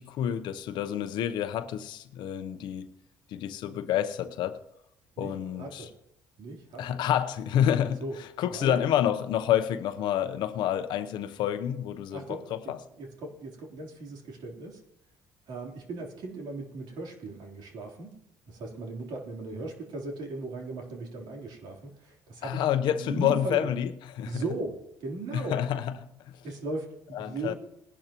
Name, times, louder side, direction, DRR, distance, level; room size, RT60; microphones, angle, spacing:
voice 1, 0.0-2.9 3.3-4.6 5.2-5.9 6.8-12.8 22.4-24.4 25.3-26.4 27.1-27.5, left 10 dB, 80° left, 0.8 m, -29 dB
voice 2, 5.6-5.9 6.4-7.0 8.0-8.1 8.5-8.8 12.1-12.4 12.6-14.8 15.5-18.1 18.5-22.6 23.0-23.7 24.2-24.8 25.0-25.6 26.4-27.6, right 3 dB, 75° right, 3.5 m, -37 dB
20.0 x 11.0 x 3.0 m
cardioid pair, 105°, 8 cm